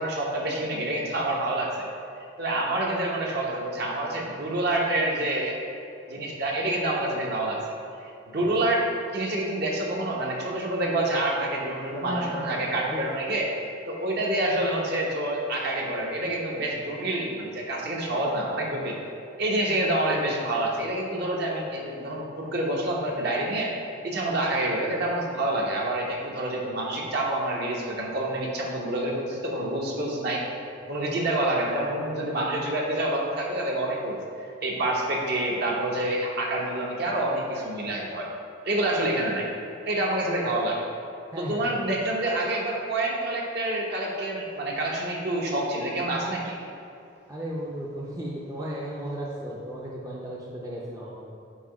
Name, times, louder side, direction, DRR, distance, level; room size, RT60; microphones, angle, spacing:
voice 1, 0.0-1.9 2.2-5.6 6.1-7.6 8.0-13.5 13.9-19.0 19.4-23.7 24.0-30.5 30.9-34.2 34.6-38.3 38.6-39.5 39.8-40.8 41.4-46.6, right 1 dB, 50° right, -2 dB, 1.0 m, -27 dB
voice 2, 12.0-13.0 41.3-41.7 47.3-51.2, equal, 15° right, -5 dB, 0.6 m, -35 dB
8.3 x 2.8 x 5.1 m, 2.6 s
head